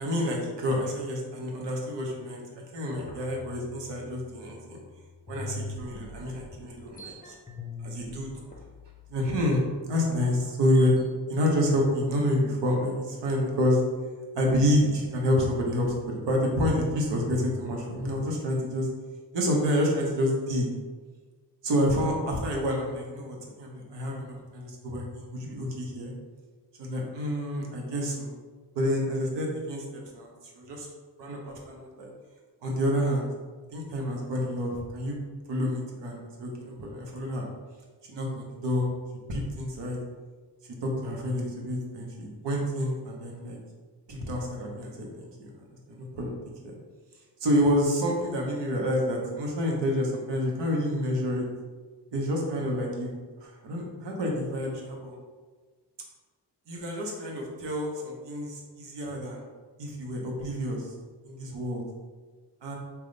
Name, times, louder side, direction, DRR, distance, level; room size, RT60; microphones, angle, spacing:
voice 1, 0.0-4.8 5.3-7.4 7.8-8.3 9.1-13.8 14.3-18.9 19.3-20.7 21.6-26.1 26.8-28.3 28.8-30.3 30.5-30.9 31.2-32.1 32.6-33.3 33.7-35.2 35.5-37.5 38.1-38.9 39.3-40.0 40.8-43.6 44.1-45.5 45.9-46.3 46.6-46.7 47.4-51.4 52.1-53.1 53.4-55.2 56.7-59.5 59.8-60.9 61.3-61.8 62.6-62.8, equal, 75° right, 0 dB, 0.9 m, -28 dB
sound 1, 3.0-4.9 5.3-11.1, left 2 dB, 20° left, 0.5 m, -43 dB
3.5 x 2.3 x 3.8 m, 1.4 s
cardioid pair, 85°, 42 cm